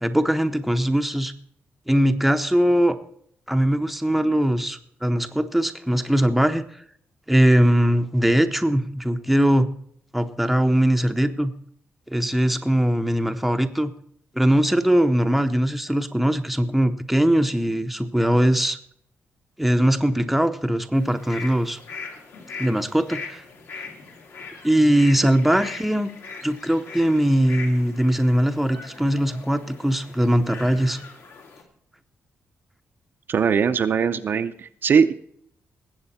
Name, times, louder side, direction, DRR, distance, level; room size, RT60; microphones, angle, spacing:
voice 1, 0.0-1.3 1.9-3.0 3.5-6.6 7.3-9.7 10.1-11.5 12.1-13.9 14.3-18.8 19.6-21.8 22.6-23.4 24.6-26.1 26.4-31.0, right 1 dB, ahead, 7 dB, 0.7 m, -20 dB
sound 1, 20.9-31.6, left 4 dB, 65° left, 2.3 m, -40 dB
voice 2, 33.3-35.1, right 6 dB, 45° right, 9 dB, 0.6 m, -20 dB
19.0 x 8.0 x 4.2 m, 0.65 s
wide cardioid pair, 155°, 5 cm